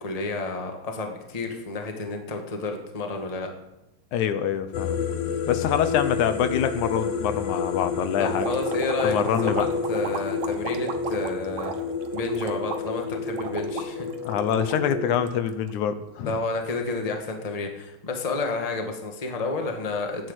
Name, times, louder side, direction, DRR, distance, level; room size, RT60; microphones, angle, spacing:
voice 1, 0.0-3.5 8.2-11.7 12.1-14.1 16.2-20.3, left 3 dB, 15° left, 3 dB, 1.3 m, -30 dB
voice 2, 4.1-5.0 5.5-8.5 9.0-9.7 14.3-16.3, left 9 dB, 80° left, 10 dB, 2.4 m, -25 dB
sound 1, 4.7-15.3, left 4 dB, 65° left, 1.9 m, -30 dB
sound 2, 8.4-15.7, right 7 dB, 70° right, 2.5 m, -36 dB
14.0 x 9.8 x 8.1 m, 0.92 s
omnidirectional pair, 3.4 m